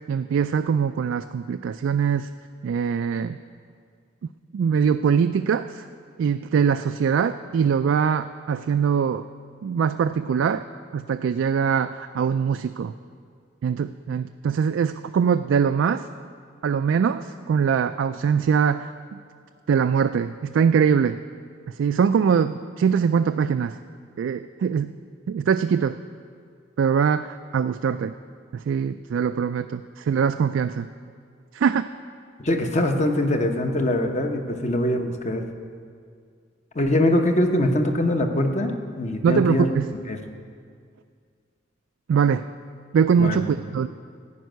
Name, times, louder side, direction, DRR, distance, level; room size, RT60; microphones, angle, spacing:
voice 1, 0.1-2.3 2.6-3.4 4.5-5.8 6.2-9.3 9.6-10.6 10.9-12.9 13.6-16.1 16.6-19.2 19.7-21.2 21.7-23.8 24.2-24.9 25.3-26.0 26.8-28.1 28.5-30.9 31.5-31.8 39.2-39.9 42.1-42.5 42.9-43.9, right 7 dB, 80° right, 9 dB, 0.3 m, -22 dB
voice 2, 32.4-35.5 36.7-39.7 40.1-40.2 43.2-43.4, left 1 dB, 35° left, 4 dB, 0.9 m, -23 dB
14.0 x 5.4 x 9.2 m, 2.2 s
head